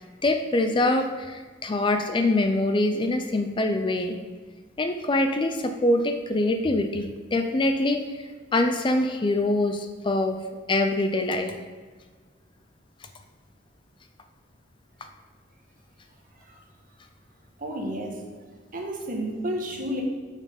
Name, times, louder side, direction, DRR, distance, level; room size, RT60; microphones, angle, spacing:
voice 1, 0.2-4.2 4.8-10.4 10.7-11.6, left 2 dB, 25° left, 6 dB, 0.4 m, -24 dB
voice 2, 17.6-18.2 18.7-20.0, equal, 45° right, 1 dB, 1.4 m, -31 dB
6.7 x 6.2 x 5.2 m, 1.4 s
head